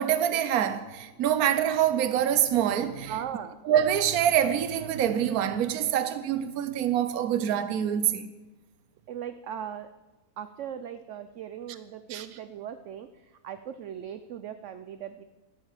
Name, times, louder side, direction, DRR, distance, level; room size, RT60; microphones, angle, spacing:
voice 1, 0.0-3.1 3.6-8.3 12.1-12.3, right 10 dB, 80° right, 1.3 m, -25 dB
voice 2, 3.1-3.6 9.1-9.9 10.4-15.2, right 9 dB, 60° right, 0.9 m, -38 dB
13.0 x 12.5 x 7.3 m
omnidirectional pair, 1.6 m